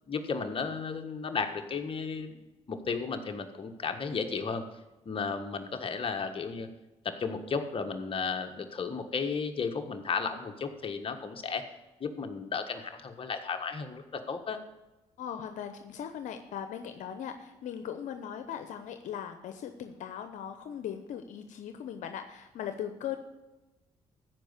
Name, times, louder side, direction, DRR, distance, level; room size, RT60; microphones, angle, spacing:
voice 1, 0.1-2.4 2.7-4.6 5.0-6.7 7.0-11.7 12.0-14.6, left 5 dB, 45° left, 6 dB, 1.5 m, -34 dB
voice 2, 15.2-23.2, left 9 dB, 80° left, 7 dB, 0.8 m, -39 dB
14.0 x 5.1 x 8.2 m, 1.0 s
supercardioid pair, 70°, 13 cm